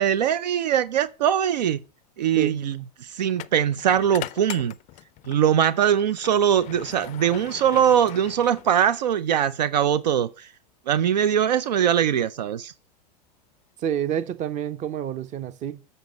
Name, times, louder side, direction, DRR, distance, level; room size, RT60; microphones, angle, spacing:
voice 1, 0.0-1.8 2.2-4.7 5.3-10.5 10.9-12.7, right 9 dB, 80° right, 0.5 m, -22 dB
sound 1, 1.2-1.4 3.3-5.5 5.9-9.1, left 17 dB, 35° left, 0.4 m, -40 dB
voice 2, 13.8-15.8, right 9 dB, 35° right, 0.8 m, -28 dB
7.6 x 5.4 x 5.1 m
hypercardioid pair, 95°, 21 cm